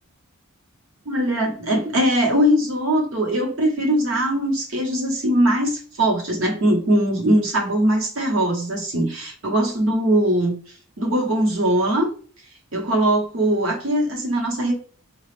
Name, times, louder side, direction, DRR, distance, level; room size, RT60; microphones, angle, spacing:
voice 1, 1.1-10.6 11.0-12.1 12.7-14.7, right 1 dB, 60° right, 1.0 m, -21 dB
4.9 x 2.3 x 3.2 m
head